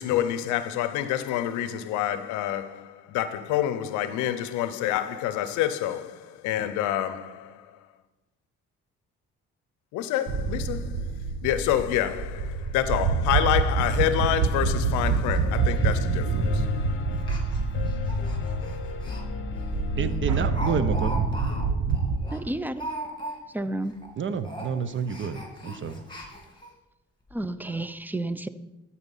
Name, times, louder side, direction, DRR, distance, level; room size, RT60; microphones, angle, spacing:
voice 1, 0.0-7.8 9.9-16.7, left 11 dB, 85° left, 0.6 m, -28 dB
sound 1, 10.3-22.2, right 4 dB, 60° right, 1.0 m, -27 dB
Speech, 12.4-12.5 12.8-12.9 13.3-13.4 13.7-13.9 14.3-14.5 14.7-15.0 15.3-15.4 16.2-16.4 17.1-19.2 19.6-19.7 20.1-23.6 23.9-24.1 24.4-26.7 27.3-27.4 27.7-27.8, right 1 dB, 15° left, 2.3 m, -39 dB
Piano, 14.6-21.7, left 6 dB, 45° left, 0.9 m, -34 dB
voice 2, 20.0-21.2 24.2-26.0, right 6 dB, 40° right, 0.7 m, -29 dB
voice 3, 22.3-22.9 23.5-23.9 27.3-28.5, right 1 dB, 5° right, 0.5 m, -31 dB
12.5 x 4.2 x 5.5 m
supercardioid pair, 70°, 29 cm